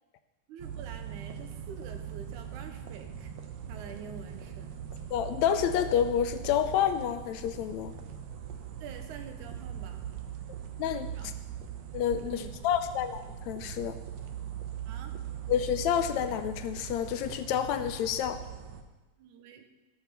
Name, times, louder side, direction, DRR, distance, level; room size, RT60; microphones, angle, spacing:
voice 1, 0.5-3.3 3.7-4.7 8.8-10.1 11.1-11.3 12.3-12.5 14.9-15.1 19.2-19.7, right 6 dB, 90° right, 6 dB, 2.5 m, -47 dB
sound 1, 0.6-18.8, right 9 dB, 70° right, 2.0 m, -41 dB
voice 2, 5.1-7.9 10.8-11.1 11.9-14.0 15.5-18.4, left 9 dB, 75° left, 10 dB, 1.8 m, -29 dB
16.0 x 6.0 x 6.9 m, 1.1 s
omnidirectional pair, 3.4 m